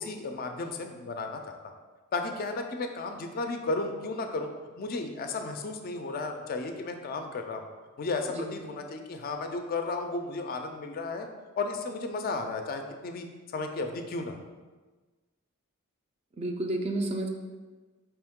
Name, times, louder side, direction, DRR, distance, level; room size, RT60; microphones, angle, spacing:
voice 1, 0.0-1.7 2.1-4.5 4.8-7.7 8.0-11.3 11.6-13.3 13.5-14.4, left 3 dB, 45° left, 5 dB, 0.4 m, -34 dB
voice 2, 16.4-17.3, right 2 dB, 30° right, 3 dB, 0.4 m, -30 dB
4.5 x 3.0 x 3.5 m, 1.3 s
head